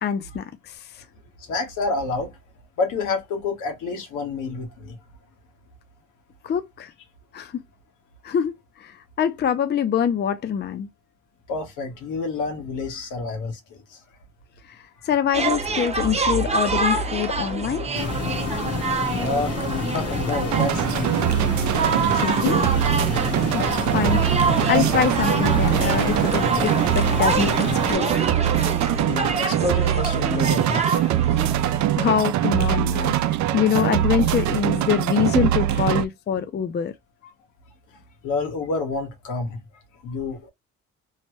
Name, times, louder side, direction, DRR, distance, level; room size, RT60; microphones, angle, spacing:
voice 1, 0.0-0.8 6.4-6.9 7.3-7.6 8.2-8.5 8.8-10.9 15.1-17.9 22.1-22.7 23.5-27.5 27.9-28.3 32.0-36.9, left 8 dB, 35° left, 0.4 m, -24 dB
voice 2, 1.4-2.4 2.8-5.0 11.5-14.0 19.1-21.2 29.0-31.2 35.7-35.8 38.2-39.6 40.0-40.5, left 3 dB, 85° left, 1.3 m, -29 dB
sound 1, 15.3-31.8, right 4 dB, 20° right, 0.7 m, -27 dB
sound 2, 18.0-28.0, left 5 dB, 50° left, 0.9 m, -29 dB
sound 3, 20.5-36.0, right 12 dB, 70° right, 0.5 m, -22 dB
3.1 x 2.2 x 3.0 m
cardioid pair, 90°, 30 cm